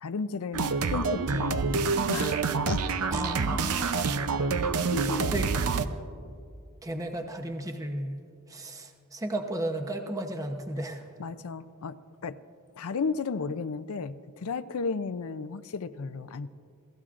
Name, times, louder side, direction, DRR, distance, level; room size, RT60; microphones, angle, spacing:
voice 1, 0.0-2.8 4.9-5.3 11.2-12.4 12.8-16.5, left 4 dB, 70° left, 13 dB, 0.5 m, -34 dB
sound 1, 0.5-5.9, right 4 dB, 80° right, 0.6 m, -27 dB
voice 2, 3.1-3.9 5.1-5.5 6.8-8.1 8.5-11.0, right 1 dB, 15° right, 4 dB, 0.8 m, -34 dB
29.0 x 16.0 x 2.5 m, 2.4 s
head